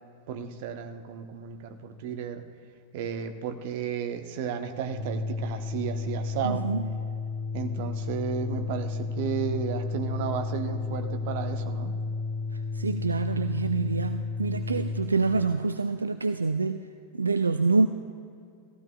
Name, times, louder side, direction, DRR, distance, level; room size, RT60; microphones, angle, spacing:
voice 1, 0.3-2.4 2.9-6.6 7.5-11.9, right 7 dB, 50° right, 6 dB, 0.9 m, -33 dB
Organ, 4.8-15.2, left 3 dB, 15° left, 1.7 m, -32 dB
voice 2, 6.4-6.8 12.8-16.8 17.2-17.9, right 3 dB, 75° right, 10 dB, 0.3 m, -26 dB
18.0 x 15.0 x 2.3 m, 2.4 s
figure-of-eight pair, 90°, 0 cm